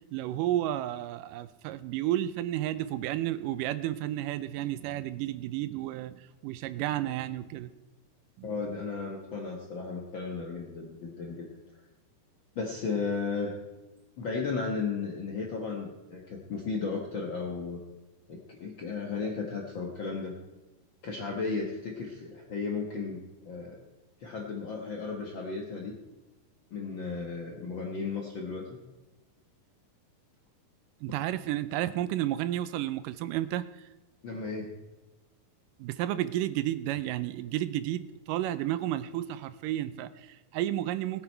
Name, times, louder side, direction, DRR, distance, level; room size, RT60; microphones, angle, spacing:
voice 1, 0.1-7.7 8.4-8.5 31.0-33.7 35.8-41.2, right 13 dB, 80° right, 13 dB, 2.0 m, -32 dB
voice 2, 8.4-11.5 12.5-13.5 14.2-17.8 18.3-20.4 21.0-23.8 24.2-25.9 26.7-28.7 34.2-34.7, left 4 dB, 75° left, 0 dB, 1.1 m, -34 dB
18.5 x 9.6 x 4.5 m, 1.1 s
omnidirectional pair, 4.3 m